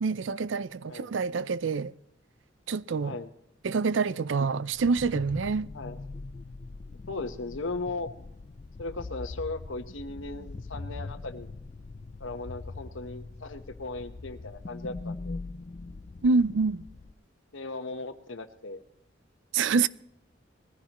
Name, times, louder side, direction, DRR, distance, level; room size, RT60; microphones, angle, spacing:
voice 1, 0.0-1.9 2.7-3.2 3.6-5.7 16.2-16.9 19.5-19.9, right 4 dB, 70° right, 0.5 m, -26 dB
sound 1, 4.7-17.1, left 3 dB, 35° left, 0.4 m, -42 dB
voice 2, 7.1-8.1 8.8-11.5 12.2-15.4 17.5-18.8, left 3 dB, 80° left, 1.1 m, -37 dB
20.5 x 15.0 x 3.0 m
head